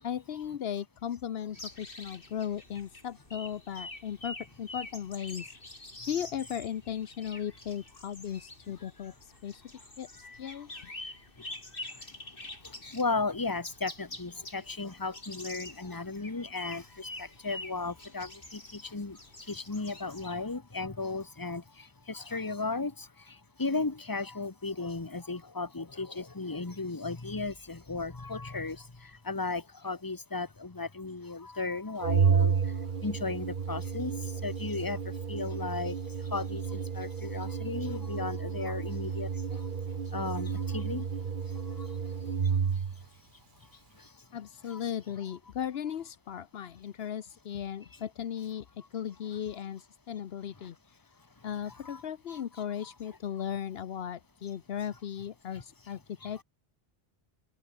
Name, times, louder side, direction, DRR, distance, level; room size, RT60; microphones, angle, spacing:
voice 1, 0.0-5.5 6.1-9.6 10.0-10.1 10.4-10.7 44.3-50.8 51.4-56.4, left 9 dB, 75° left, 1.0 m, -37 dB
sound 1, 1.5-20.6, left 2 dB, 60° left, 4.3 m, -46 dB
voice 2, 11.4-43.1 43.6-44.3 44.7-44.8 50.6-50.7 51.4-51.5 51.8-52.0 52.3-52.4 56.2-56.3, left 3 dB, 20° left, 1.3 m, -36 dB
Organ, 32.0-43.0, right 6 dB, 55° right, 1.1 m, -31 dB
omnidirectional pair, 1.1 m